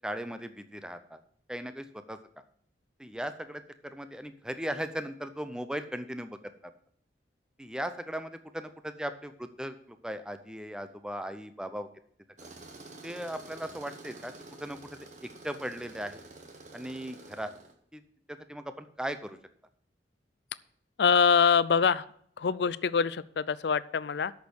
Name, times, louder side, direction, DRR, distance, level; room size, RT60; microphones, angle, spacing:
voice 1, 0.0-1.2 1.5-2.2 3.0-6.4 7.6-11.9 13.0-14.3 14.6-14.8 15.4-16.2 16.7-17.5 17.9-18.0 18.3-19.4, equal, 5° right, 10 dB, 0.6 m, -37 dB
Tools, 12.4-17.7, right 2 dB, 40° right, 1.3 m, -49 dB
voice 2, 21.0-22.1 22.4-24.3, left 6 dB, 65° left, 18 dB, 0.4 m, -24 dB
8.4 x 6.4 x 7.9 m, 0.63 s
head